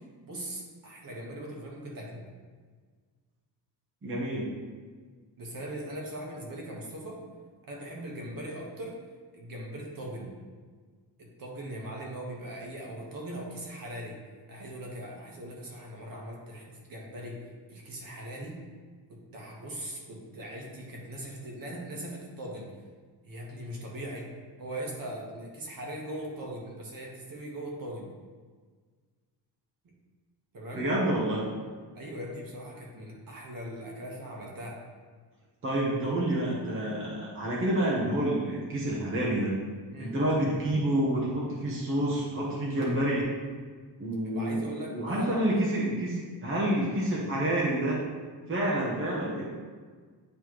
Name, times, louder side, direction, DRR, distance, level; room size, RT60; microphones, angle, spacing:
voice 1, 0.0-2.2 5.4-7.2 7.7-9.0 9.3-10.3 11.2-14.2 14.5-18.6 19.1-22.7 23.2-24.3 24.6-28.1 30.5-30.9 31.9-34.8 39.9-40.2 44.2-45.4, right 1 dB, 55° right, -2 dB, 1.3 m, -40 dB
voice 2, 4.0-4.5 30.7-31.5 35.6-39.5 40.0-43.3 44.0-44.6 44.9-48.0 48.5-49.4, right 1 dB, 30° right, -5 dB, 1.0 m, -28 dB
9.7 x 3.3 x 3.0 m, 1.5 s
wide cardioid pair, 170°, 42 cm